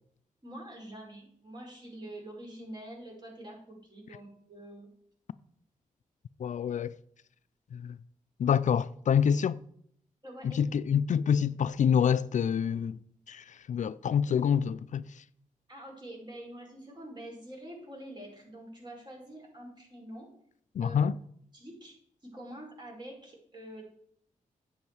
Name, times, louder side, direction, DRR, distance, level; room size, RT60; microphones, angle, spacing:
voice 1, 0.4-4.9 10.2-10.6 15.7-20.3 20.8-21.0 21.5-22.0 22.2-23.8, right 1 dB, 30° right, 5.1 m, -46 dB
voice 2, 6.4-6.9 7.7-8.0 8.4-9.6 10.4-13.0 13.3-15.0 20.8-21.2, left 7 dB, 65° left, 0.4 m, -27 dB
10.5 x 7.9 x 4.8 m
cardioid pair, 65°, 14 cm